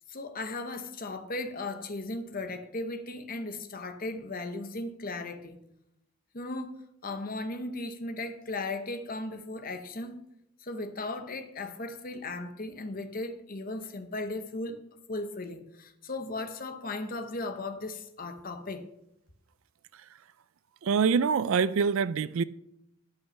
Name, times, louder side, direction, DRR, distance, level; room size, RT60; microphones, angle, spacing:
voice 1, 0.1-5.6 6.3-6.7 7.0-10.2 10.6-14.7 15.1-18.9, left 2 dB, 40° left, 0.9 m, -36 dB
voice 2, 20.8-22.4, right 6 dB, 65° right, 0.4 m, -25 dB
12.0 x 5.5 x 5.8 m
head